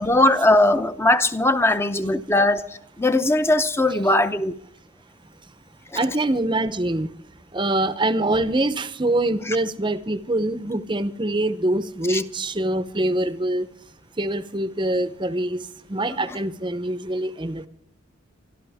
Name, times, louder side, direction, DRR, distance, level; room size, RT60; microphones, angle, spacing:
voice 1, 0.0-2.7 3.0-4.5 12.1-12.2, left 2 dB, 10° left, 0.7 m, -19 dB
voice 2, 5.9-7.1 7.5-13.7 14.2-15.6 15.9-17.7, right 1 dB, 25° right, 0.7 m, -24 dB
25.0 x 12.5 x 3.5 m
head